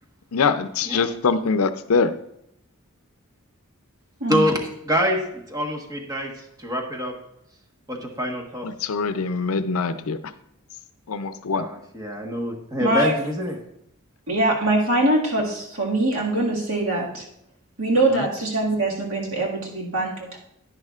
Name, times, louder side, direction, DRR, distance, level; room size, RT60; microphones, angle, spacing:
voice 1, 0.3-2.1 8.6-10.2 11.2-11.6 18.1-18.2, left 5 dB, 75° left, 12 dB, 0.5 m, -23 dB
voice 2, 4.8-5.2 5.5-6.3 6.6-7.1 7.9-8.7 11.6-13.6, equal, 15° right, 0 dB, 1.3 m, -25 dB
voice 3, 12.8-13.2 14.3-17.2 17.8-20.4, right 2 dB, 70° right, -2 dB, 1.9 m, -23 dB
10.5 x 10.5 x 2.4 m, 0.75 s
head